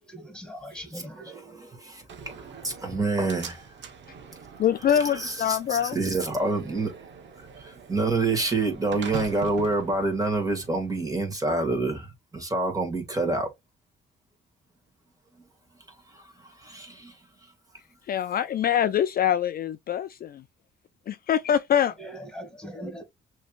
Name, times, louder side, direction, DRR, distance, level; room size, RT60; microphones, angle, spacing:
voice 1, 0.0-1.4 22.0-23.0, equal, 5° left, 2.3 m, -40 dB
voice 2, 1.5-2.4 2.6-3.6 4.9-6.9 7.6-12.1 12.3-13.5 16.1-16.2 16.6-17.1, right 3 dB, 15° right, 2.3 m, -27 dB
Slam, 2.1-11.1, right 6 dB, 65° right, 1.2 m, -43 dB
voice 3, 4.6-6.0 18.1-20.4 21.1-21.9, left 9 dB, 50° left, 0.4 m, -24 dB
6.2 x 3.2 x 2.5 m
cardioid pair, 90°, 20 cm